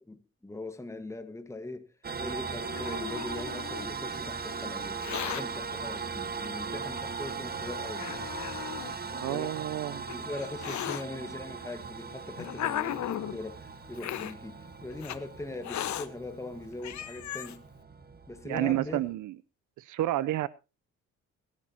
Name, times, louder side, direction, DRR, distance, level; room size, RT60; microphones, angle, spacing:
voice 1, 0.1-1.9 2.2-8.1 9.1-9.6 10.1-17.7 18.3-19.1, left 2 dB, 10° left, 1.5 m, -41 dB
sound 1, 2.0-19.1, right 5 dB, 30° right, 1.5 m, -39 dB
Hiss, 2.2-3.9 4.8-5.4 6.4-6.5 7.3-7.4 7.9-9.0 9.8-11.0 11.9-13.4 14.0-14.3 15.0-15.2 15.6-16.1 16.5-16.6 16.8-17.6, left 11 dB, 70° left, 1.3 m, -36 dB
voice 2, 9.1-10.2 18.5-19.3 19.9-20.5, right 14 dB, 80° right, 0.7 m, -30 dB
23.5 x 10.5 x 2.9 m
cardioid pair, 90°, 30 cm